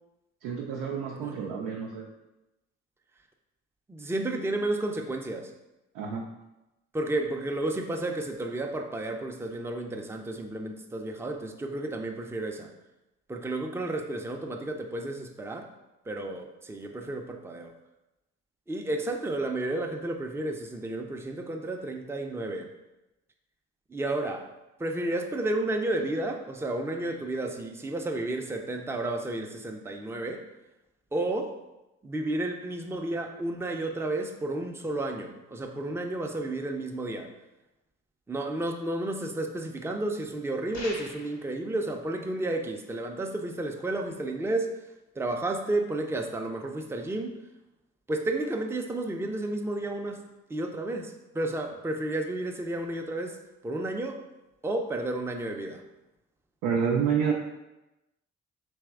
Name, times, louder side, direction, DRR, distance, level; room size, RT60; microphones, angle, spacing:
voice 1, 0.4-2.0 5.9-6.3 56.6-57.3, right 6 dB, 80° right, -1 dB, 0.5 m, -28 dB
voice 2, 1.2-1.5 3.9-5.5 6.9-12.7 13.3-15.7 16.1-17.7 18.7-22.7 23.9-24.5 24.8-30.5 31.1-31.6 32.0-37.3 38.3-44.7 45.2-47.3 48.1-50.2 50.5-54.2 54.6-55.8, right 2 dB, 10° right, 3 dB, 0.5 m, -32 dB
sound 1, 40.7-41.5, left 2 dB, 85° left, 1.1 m, -41 dB
3.5 x 3.1 x 3.5 m, 0.97 s
hypercardioid pair, 50°, 33 cm